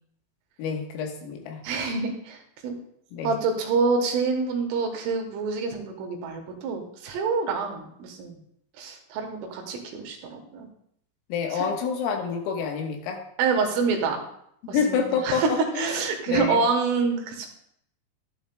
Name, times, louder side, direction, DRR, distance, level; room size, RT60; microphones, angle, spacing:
voice 1, 0.6-1.6 3.1-3.4 11.3-13.2 14.7-16.6, left 6 dB, 90° left, 2 dB, 3.9 m, -28 dB
voice 2, 1.6-2.8 3.2-8.4 8.8-10.7 11.5-11.7 13.4-14.2 14.7-15.5 15.8-17.5, right 4 dB, 85° right, 2 dB, 3.8 m, -27 dB
12.5 x 10.5 x 2.2 m, 0.73 s
omnidirectional pair, 5.7 m